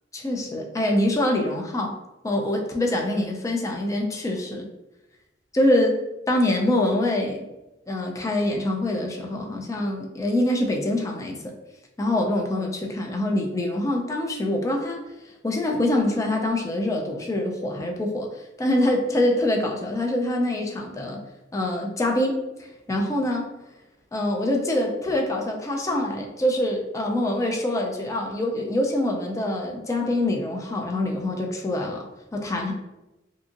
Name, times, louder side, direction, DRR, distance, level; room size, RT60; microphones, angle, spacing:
voice 1, 0.1-2.0 2.2-4.7 5.5-7.5 7.9-11.4 12.0-15.0 15.4-18.3 18.6-21.2 21.5-23.4 24.1-32.1 32.3-32.7, left 1 dB, 20° left, 1 dB, 0.4 m, -25 dB
2.8 x 2.4 x 2.5 m, 0.99 s
head